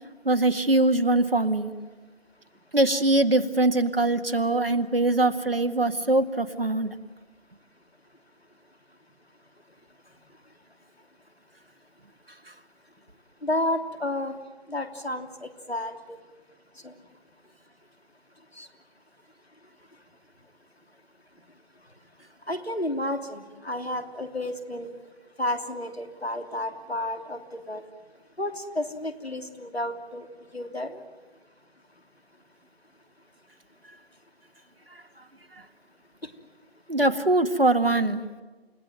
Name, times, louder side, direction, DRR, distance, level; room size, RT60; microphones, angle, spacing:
voice 1, 0.2-1.7 2.7-6.9 34.9-35.0 36.9-38.2, right 2 dB, 65° right, 8 dB, 1.9 m, -22 dB
voice 2, 13.4-14.3 14.7-16.2 16.8-16.9 18.5-18.7 22.5-24.9 25.4-27.8 28.4-31.0 36.2-36.3, left 1 dB, 80° left, 7 dB, 3.1 m, -31 dB
29.5 x 17.5 x 9.2 m, 1.3 s
figure-of-eight pair, 165°, 31 cm